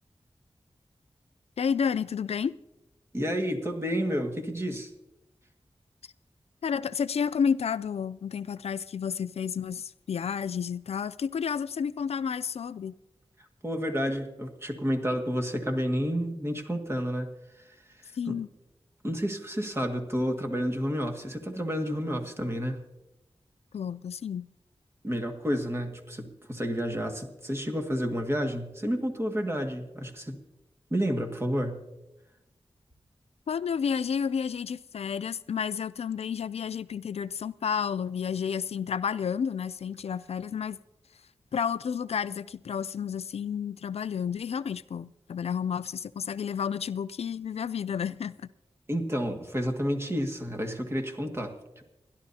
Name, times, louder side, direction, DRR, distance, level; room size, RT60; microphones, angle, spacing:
voice 1, 1.6-2.5 6.6-12.9 18.1-18.5 23.7-24.5 33.5-40.8 41.5-48.4, left 7 dB, 85° left, 0.4 m, -31 dB
voice 2, 3.1-4.9 13.6-17.3 17.5-18.4 19.0-22.8 25.0-30.4 30.9-31.8 48.9-51.8, equal, 25° right, 1.9 m, -30 dB
30.0 x 11.5 x 2.8 m
wide cardioid pair, 95°, 10 cm